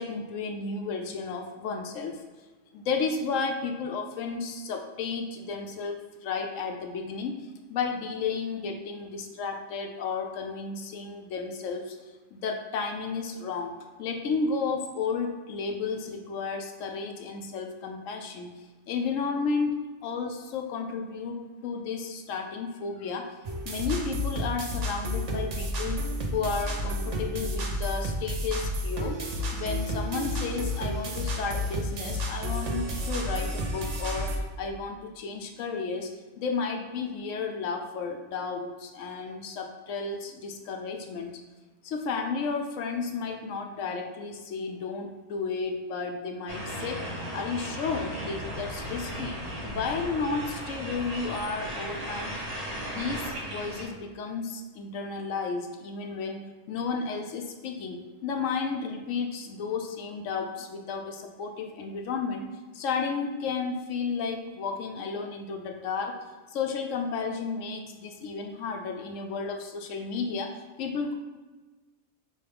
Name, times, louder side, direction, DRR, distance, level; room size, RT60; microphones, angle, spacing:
voice 1, 0.0-2.1 2.7-7.4 7.7-12.0 12.3-13.7 14.0-18.5 18.9-19.7 20.0-23.3 23.6-26.0 26.3-29.2 29.5-36.1 36.4-41.4 41.8-47.0 47.3-49.3 49.6-52.4 52.8-62.4 62.7-66.1 66.5-71.2, left 5 dB, 80° left, 4 dB, 0.9 m, -32 dB
sound 1, 23.4-34.4, equal, 55° right, 0.4 m, -31 dB
sound 2, 46.5-53.9, equal, 35° right, 0.8 m, -36 dB
4.6 x 3.1 x 3.4 m, 1.3 s
omnidirectional pair, 1.3 m